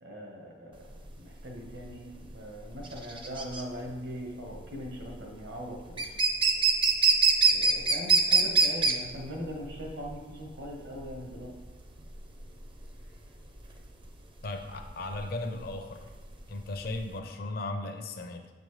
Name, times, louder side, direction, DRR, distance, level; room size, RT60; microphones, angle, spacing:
voice 1, 0.0-0.9 1.2-6.1 7.5-11.5, equal, 70° right, -1 dB, 1.2 m, -40 dB
sound 1, 0.8-17.2, right 4 dB, 25° right, 0.5 m, -26 dB
voice 2, 14.4-16.1 16.5-18.5, left 2 dB, 55° left, 5 dB, 0.6 m, -36 dB
7.3 x 5.3 x 3.2 m, 1.3 s
head